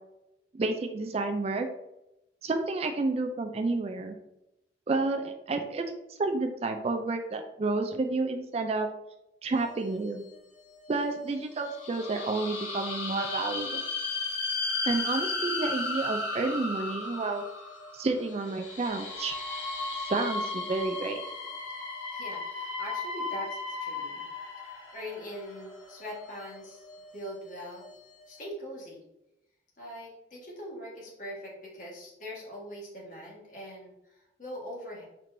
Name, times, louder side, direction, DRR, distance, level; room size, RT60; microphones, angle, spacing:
voice 1, 0.5-1.7 2.4-4.1 4.9-5.9 6.2-8.9 9.4-10.2 10.9-13.8 14.8-17.4 17.9-19.4 20.0-21.2, right 3 dB, 35° right, 5 dB, 0.3 m, -30 dB
sound 1, 9.6-10.3 10.9-11.0 11.3-27.5 27.8-28.0 28.3-28.4, left 3 dB, 85° left, 1.2 m, -35 dB
voice 2, 22.1-24.2 24.6-26.9 27.1-27.8 28.3-29.0 29.8-35.0, equal, 45° left, -4 dB, 1.5 m, -42 dB
4.4 x 4.4 x 2.6 m, 0.90 s
head